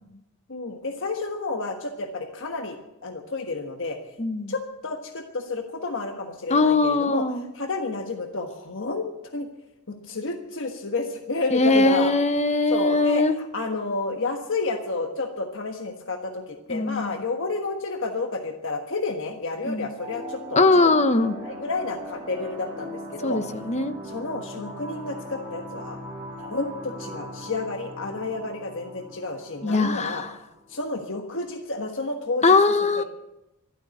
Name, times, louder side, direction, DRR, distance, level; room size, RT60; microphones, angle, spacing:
voice 1, 0.5-2.8 3.0-4.0 4.5-7.2 7.5-9.1 9.3-9.5 9.9-12.1 12.7-20.6 21.4-23.4 24.0-26.0 26.4-30.2 30.7-32.4 32.9-33.0, left 3 dB, 60° left, 4 dB, 1.4 m, -30 dB
voice 2, 4.2-4.5 6.5-7.5 11.5-13.4 16.7-17.2 19.7-19.9 20.6-21.4 23.2-23.9 29.6-30.3 32.4-33.0, left 3 dB, 30° left, 10 dB, 0.9 m, -21 dB
sound 1, 20.0-31.0, equal, 15° right, 5.5 m, -40 dB
12.5 x 12.0 x 9.1 m, 0.95 s
head